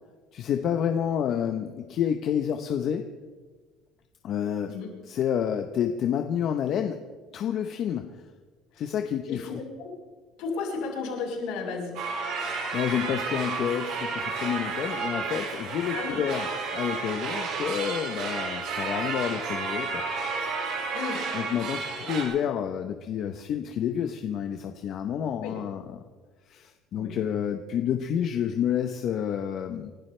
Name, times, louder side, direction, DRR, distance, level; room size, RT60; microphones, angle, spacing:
voice 1, 0.3-3.0 4.2-4.7 5.0-7.0 7.3-8.2 8.8-9.6 12.7-20.1 21.3-26.0 26.5-29.9, left 9 dB, 45° left, 5 dB, 0.9 m, -29 dB
voice 2, 9.3-9.9 10.4-12.0 15.9-16.2 20.9-21.2 25.4-25.5 26.9-27.1, left 4 dB, 70° left, -1 dB, 6.2 m, -33 dB
sound 1, 11.9-22.2, right 4 dB, 60° right, 4.0 m, -31 dB
29.0 x 12.0 x 3.3 m, 1.4 s
cardioid pair, 150°, 0 cm